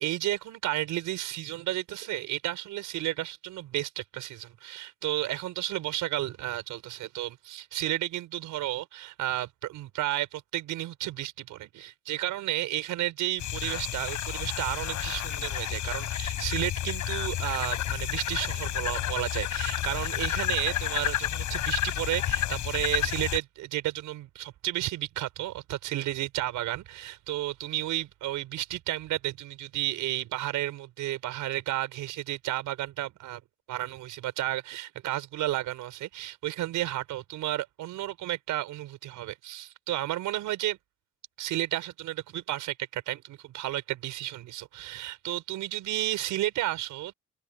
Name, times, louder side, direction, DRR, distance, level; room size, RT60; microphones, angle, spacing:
voice 1, 0.0-33.4 33.7-40.8 41.4-47.1, right 15 dB, 90° right, 5.6 m, -32 dB
sound 1, 13.4-23.4, left 12 dB, 75° left, 4.7 m, -31 dB
cardioid pair, 90°, 30 cm